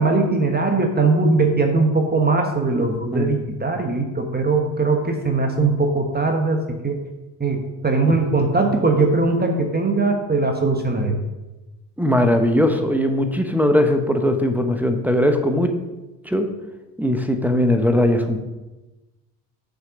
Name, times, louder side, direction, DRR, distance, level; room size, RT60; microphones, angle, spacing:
voice 1, 0.0-7.0 7.4-11.2, right 3 dB, 20° right, 3 dB, 1.2 m, -20 dB
voice 2, 2.7-3.4 8.1-8.2 12.0-15.7 16.2-16.5 17.0-18.4, left 1 dB, 5° right, 4 dB, 0.9 m, -20 dB
6.5 x 6.3 x 5.2 m, 1.1 s
hypercardioid pair, 70°, 49 cm